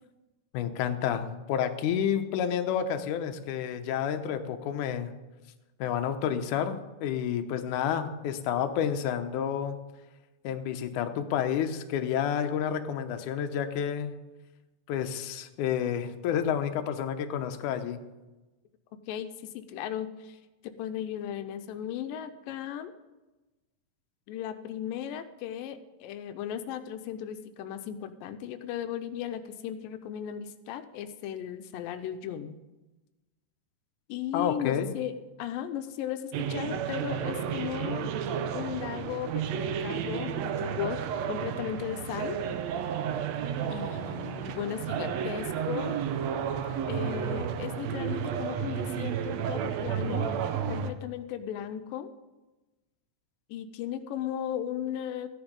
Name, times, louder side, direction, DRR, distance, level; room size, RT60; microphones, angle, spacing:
voice 1, 0.5-5.1 5.8-9.8 10.4-14.1 14.9-18.0 34.3-34.9, left 8 dB, 70° left, 7 dB, 2.2 m, -30 dB
voice 2, 19.1-20.4 20.8-22.9 24.3-32.6 34.1-35.1 35.4-38.2 38.5-41.0 41.3-42.4 43.7-46.0 46.9-52.1 53.5-55.3, left 10 dB, 90° left, 9 dB, 2.4 m, -36 dB
sound 1, 36.3-50.9, right 8 dB, 75° right, 1.6 m, -32 dB
14.5 x 10.5 x 5.3 m, 1.1 s
omnidirectional pair, 3.9 m